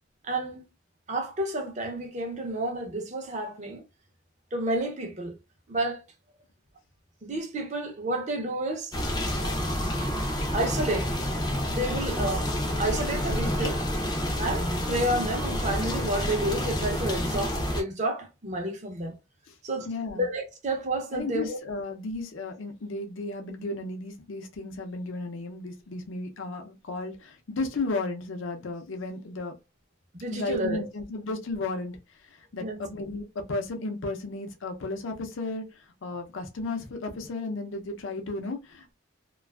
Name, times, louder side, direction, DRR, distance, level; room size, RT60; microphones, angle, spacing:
voice 1, 0.2-0.6 1.1-3.8 4.5-5.3 5.7-6.0 7.2-9.0 9.4-9.6 10.5-11.1 11.7-12.5 12.8-13.8 14.4-19.2 19.6-19.9 20.1-21.6 30.1-30.8 32.6-32.8, right 1 dB, 35° right, 0.6 m, -30 dB
sound 1, 8.9-17.8, left 1 dB, 20° left, 0.4 m, -29 dB
voice 2, 19.9-20.3 21.1-29.5 30.3-38.9, left 2 dB, 70° left, 0.5 m, -34 dB
2.4 x 2.3 x 2.2 m
head